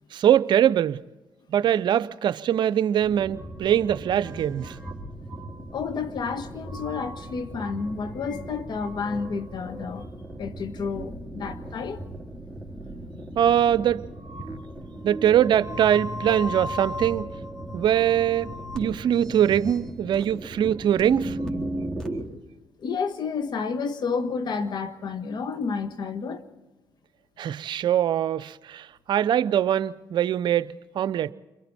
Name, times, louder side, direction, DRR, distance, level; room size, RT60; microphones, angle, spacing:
voice 1, 0.1-1.0 1.5-4.8 13.4-14.1 15.0-17.3 17.7-18.5 18.7-21.4 27.4-31.3, right 10 dB, 60° right, 0.6 m, -22 dB
sound 1, 3.0-22.2, equal, 5° left, 3.9 m, -36 dB
voice 2, 5.7-10.1 10.4-12.0 22.8-26.4, left 5 dB, 55° left, 1.7 m, -30 dB
29.5 x 23.0 x 4.3 m
supercardioid pair, 60°, 9 cm